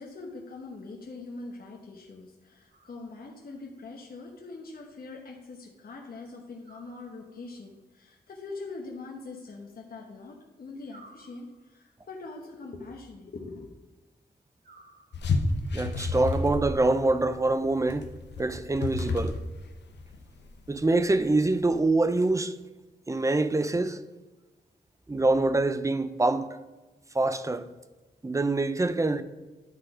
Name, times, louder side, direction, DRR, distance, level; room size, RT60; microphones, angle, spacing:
voice 1, 0.0-13.7, left 3 dB, 60° left, 1.1 m, -43 dB
sound 1, 2.7-3.5 6.6-7.7 10.9-12.0 14.6-15.6, right 2 dB, 65° right, 2.2 m, -57 dB
sound 2, 15.1-21.8, left 3 dB, 85° left, 0.9 m, -31 dB
voice 2, 15.7-18.1 18.4-19.4 20.7-22.5 23.1-24.0 25.1-26.5 27.1-27.7 28.2-29.2, right 2 dB, 20° right, 0.5 m, -25 dB
10.5 x 3.9 x 4.9 m
cardioid pair, 70°, 18 cm